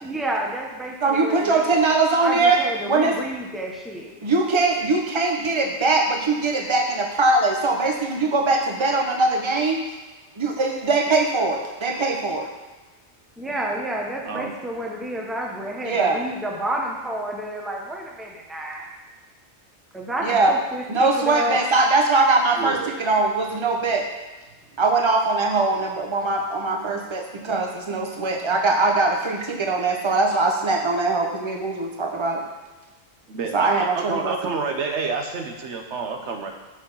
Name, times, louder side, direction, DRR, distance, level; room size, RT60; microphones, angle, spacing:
voice 1, 0.0-4.2 13.4-18.8 19.9-21.6, right 1 dB, ahead, -1 dB, 0.9 m, -30 dB
voice 2, 1.0-2.6 2.8-3.1 4.2-9.8 10.4-12.5 15.8-16.2 20.2-20.5 20.9-24.0 24.8-32.4 33.5-34.5, right 3 dB, 25° right, 2 dB, 0.9 m, -21 dB
voice 3, 14.2-14.5 22.6-22.9 24.7-24.8 28.1-28.4 33.3-36.5, right 4 dB, 80° right, 3 dB, 1.2 m, -29 dB
6.3 x 6.0 x 5.5 m, 1.2 s
omnidirectional pair, 1.2 m